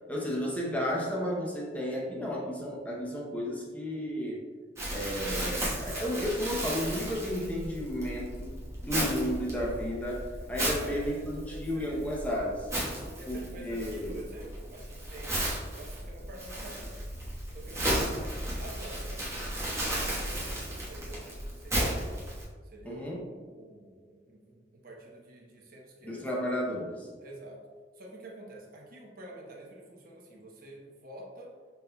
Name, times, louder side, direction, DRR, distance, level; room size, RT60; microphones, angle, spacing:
voice 1, 0.1-4.4 4.9-12.7 13.3-14.2 22.8-23.2 26.0-27.1, equal, 10° left, -4 dB, 0.7 m, -33 dB
Crumpling crinkling, 4.8-22.4, right 1 dB, 15° right, 1.2 m, -35 dB
voice 2, 10.8-12.1 13.2-15.4 15.7-17.0 17.5-18.2 18.6-21.2 21.6-22.2 22.6-26.2 27.2-27.6 28.0-31.5, right 1 dB, 55° right, -1 dB, 0.9 m, -48 dB
5.6 x 4.1 x 2.2 m, 1.5 s
head